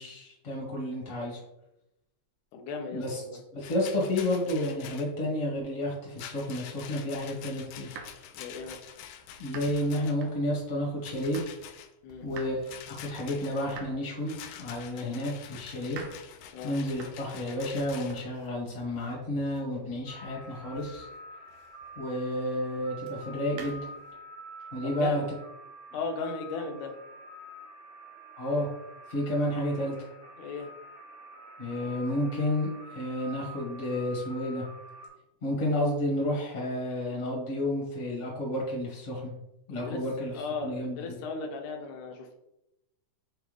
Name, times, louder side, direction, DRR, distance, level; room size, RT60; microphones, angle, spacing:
voice 1, 0.0-1.4 2.9-3.2 3.5-7.9 9.4-11.4 12.2-16.0 16.6-21.1 21.9-23.9 24.7-25.2 28.4-28.7 29.1-29.9 31.6-34.6 35.4-39.3 39.7-40.4 40.6-41.0, left 1 dB, 25° left, -4 dB, 1.6 m, -31 dB
voice 2, 2.5-3.4 8.3-8.8 12.0-12.3 16.5-16.7 24.8-25.2 25.9-26.9 30.4-30.7 39.7-42.4, left 4 dB, 70° left, 3 dB, 2.0 m, -37 dB
Rattle, 3.6-5.1 6.1-10.3 11.0-11.9 12.6-13.8 14.3-18.2, left 9 dB, 90° left, 1.9 m, -46 dB
sound 1, 7.7-11.8 12.1-22.0 23.0-24.2, right 5 dB, 75° right, 2.0 m, -50 dB
sound 2, 20.1-35.1, right 1 dB, 25° right, 1.7 m, -47 dB
6.6 x 4.2 x 3.5 m, 0.88 s
omnidirectional pair, 4.4 m